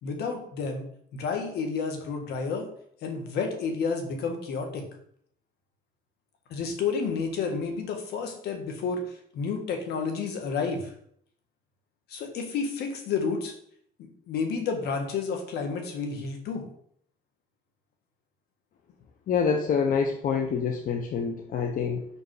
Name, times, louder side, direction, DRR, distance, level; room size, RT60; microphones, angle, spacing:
voice 1, 0.0-2.6 3.0-4.8 6.5-10.9 12.1-13.6 14.0-16.6, left 5 dB, 75° left, 4 dB, 1.6 m, -31 dB
voice 2, 19.3-22.1, left 6 dB, 55° left, 3 dB, 0.9 m, -26 dB
5.8 x 5.3 x 4.8 m, 0.64 s
cardioid pair, 110°, 17 cm